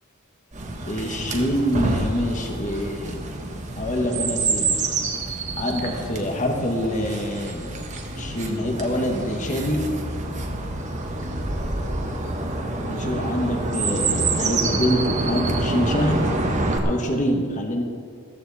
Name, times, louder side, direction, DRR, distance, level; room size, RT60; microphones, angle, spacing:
Chirp tweet, 0.5-16.8, right 2 dB, 35° right, 1.5 m, -27 dB
voice 1, 0.9-3.2 3.8-4.8 5.6-7.8 8.2-9.9 12.8-16.2 16.8-17.8, equal, 35° left, 2 dB, 1.7 m, -25 dB
15.0 x 14.5 x 4.3 m, 2.2 s
head